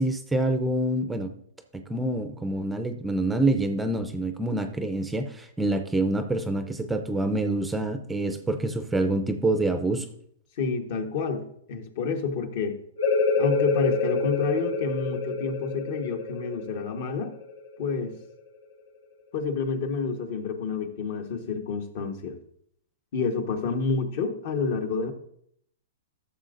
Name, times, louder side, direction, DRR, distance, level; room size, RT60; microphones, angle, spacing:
voice 1, 0.0-1.3 1.7-10.1, right 2 dB, 5° right, 8 dB, 0.5 m, -26 dB
voice 2, 10.6-12.8 13.4-17.3 17.8-18.2 19.3-22.4 23.1-25.1, left 4 dB, 55° left, 6 dB, 1.3 m, -29 dB
sound 1, 13.0-18.4, left 3 dB, 75° left, 1.4 m, -27 dB
13.5 x 6.9 x 2.6 m, 0.69 s
hypercardioid pair, 150°, 0 cm